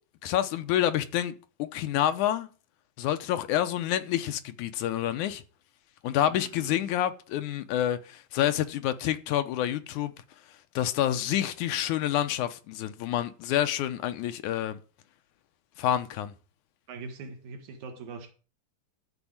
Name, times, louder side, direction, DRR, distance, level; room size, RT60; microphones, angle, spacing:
voice 1, 0.2-2.5 3.0-5.4 6.0-10.1 10.8-14.8 15.8-16.3, left 11 dB, 80° left, 2.3 m, -28 dB
voice 2, 6.3-6.8 16.9-18.3, right 4 dB, 70° right, 2.9 m, -42 dB
13.5 x 4.6 x 8.7 m
omnidirectional pair, 3.6 m